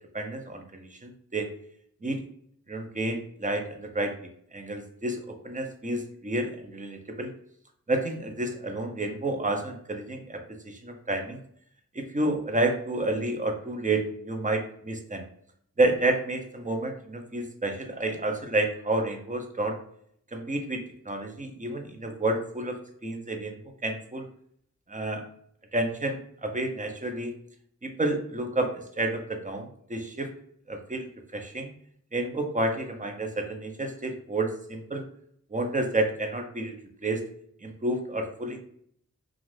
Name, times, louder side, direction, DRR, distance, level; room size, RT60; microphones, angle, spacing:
voice 1, 0.1-1.5 2.0-2.2 2.7-4.2 4.5-7.3 7.9-11.4 11.9-15.3 15.8-19.8 20.3-23.5 23.8-24.3 24.9-25.2 25.7-27.3 27.8-30.3 30.7-31.7 32.1-35.0 35.5-36.7 37.0-37.2 37.6-38.6, right 2 dB, 25° right, 4 dB, 0.7 m, -30 dB
2.5 x 2.5 x 3.3 m, 0.65 s
cardioid pair, 45°, 33 cm